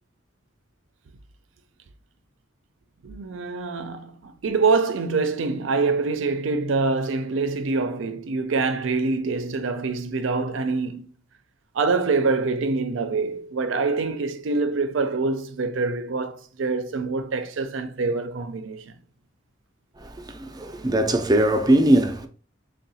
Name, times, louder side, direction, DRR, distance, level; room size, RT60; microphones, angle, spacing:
voice 1, 3.0-11.1 11.7-18.9, right 4 dB, 75° right, 0.5 m, -25 dB
voice 2, 20.0-22.3, right 1 dB, 20° right, 0.4 m, -20 dB
3.7 x 2.2 x 4.0 m
head